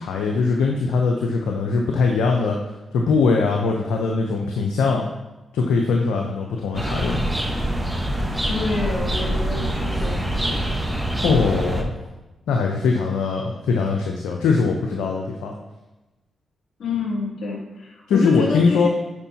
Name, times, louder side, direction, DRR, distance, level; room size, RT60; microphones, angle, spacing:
voice 1, 0.0-2.6 2.9-5.1 5.5-7.3 11.2-11.9 12.5-15.6 18.1-18.9, left 4 dB, 85° left, 1 dB, 0.5 m, -21 dB
sound 1, 6.7-11.8, right 1 dB, 10° right, 1.0 m, -25 dB
voice 2, 8.5-10.7 16.8-18.9, left 4 dB, 70° left, -3 dB, 2.3 m, -27 dB
9.7 x 4.6 x 2.8 m, 1.1 s
supercardioid pair, 45°, 0 cm